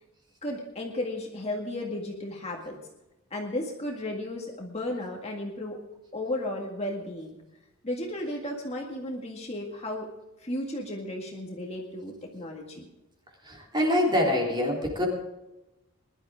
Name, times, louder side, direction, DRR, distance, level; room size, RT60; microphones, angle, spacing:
voice 1, 0.4-2.8 3.3-5.8 6.1-7.4 7.8-10.1 10.4-12.9, left 1 dB, 30° left, 0 dB, 1.9 m, -34 dB
voice 2, 13.5-15.1, left 1 dB, 20° right, -1 dB, 3.5 m, -25 dB
21.0 x 12.0 x 3.7 m, 0.99 s
head